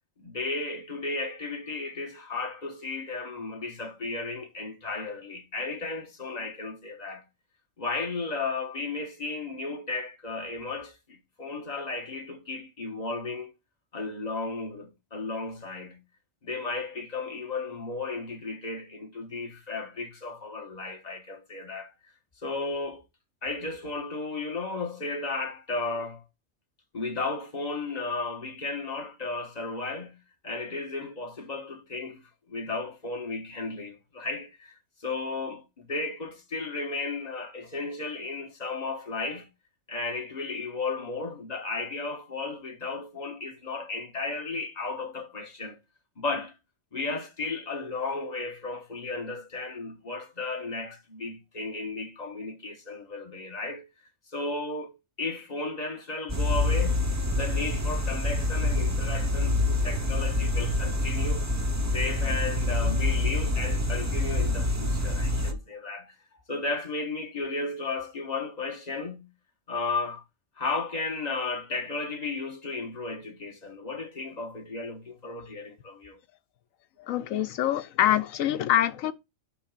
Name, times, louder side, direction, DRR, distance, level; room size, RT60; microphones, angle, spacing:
voice 1, 0.2-7.2 7.8-13.5 13.9-16.0 16.4-21.9 22.4-23.0 23.4-26.2 26.9-30.2 30.4-32.2 32.5-34.7 35.0-39.5 39.9-45.8 46.2-46.5 46.9-53.9 54.3-54.9 55.2-57.1 57.3-66.1 66.5-69.3 69.7-70.2 70.6-76.2, left 3 dB, 30° left, 1.5 m, -34 dB
sound 1, 56.3-65.5, left 2 dB, 15° right, 0.7 m, -26 dB
voice 2, 77.0-79.1, left 12 dB, 80° left, 1.1 m, -25 dB
9.9 x 5.6 x 2.4 m
omnidirectional pair, 1.4 m